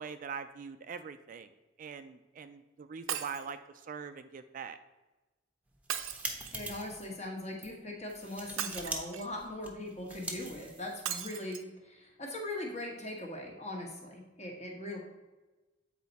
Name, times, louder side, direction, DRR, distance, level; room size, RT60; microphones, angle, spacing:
voice 1, 0.0-1.5 1.8-4.8, right 6 dB, 40° right, 10 dB, 0.3 m, -43 dB
Shatter, 3.1-3.5 5.9-6.8 8.6-9.4 11.1-11.6 12.3-12.4 12.6-12.7, right 9 dB, 90° right, 0.6 m, -38 dB
sound 1, 5.7-7.1 7.5-7.7 8.1-9.0 9.3-11.2, right 2 dB, 5° right, 0.8 m, -42 dB
voice 2, 6.5-15.0, left 1 dB, 35° left, 0 dB, 1.4 m, -40 dB
8.2 x 4.6 x 4.1 m, 1.1 s
head